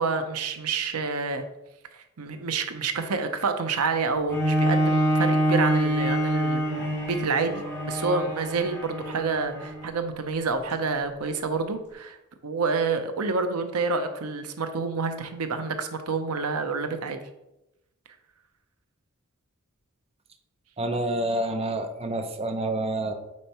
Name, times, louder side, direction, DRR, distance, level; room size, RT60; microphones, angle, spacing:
voice 1, 0.0-1.5 2.2-12.2 12.4-17.2, right 4 dB, 85° right, 8 dB, 0.7 m, -28 dB
Bowed string instrument, 4.3-9.9 10.6-10.7, right 1 dB, 10° left, 2.1 m, -26 dB
voice 2, 20.8-23.1, right 1 dB, 30° right, 6 dB, 0.6 m, -28 dB
8.6 x 4.5 x 3.0 m, 0.90 s
head